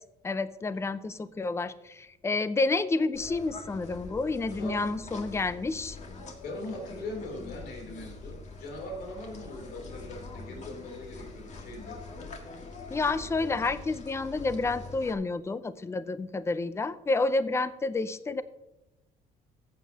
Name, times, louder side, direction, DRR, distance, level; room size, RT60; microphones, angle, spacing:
voice 1, 0.2-6.0 12.9-18.4, left 3 dB, 15° left, 14 dB, 0.5 m, -29 dB
sound 1, 3.1-15.1, left 3 dB, 45° left, 1.8 m, -44 dB
voice 2, 4.5-4.9 6.4-12.0, left 1 dB, 70° left, 1 dB, 3.3 m, -40 dB
14.5 x 8.2 x 2.8 m, 0.93 s
cardioid pair, 110°, 17 cm